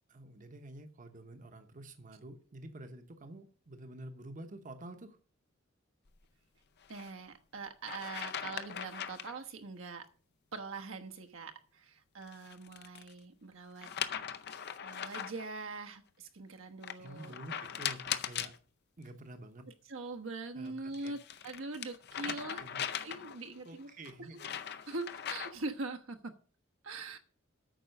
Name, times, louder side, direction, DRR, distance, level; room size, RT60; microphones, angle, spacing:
voice 1, 0.1-5.2 17.0-18.5 19.0-19.6 20.5-20.7 21.0-21.1 22.2-22.3 22.6-22.9 23.6-24.4, right 1 dB, 40° right, 7 dB, 0.9 m, -49 dB
sound 1, 6.8-7.1 7.8-9.4 12.2-13.1 13.8-15.5 16.8-18.6 20.7-23.5 24.0-25.7, left 9 dB, 55° left, 0.6 m, -40 dB
voice 2, 6.9-10.1 10.5-13.9 14.8-17.3 19.9-22.6 23.0-23.9 24.3-24.4 24.9-26.3 26.8-27.2, right 3 dB, 80° right, 5 dB, 1.2 m, -43 dB
9.0 x 6.1 x 6.5 m, 0.41 s
head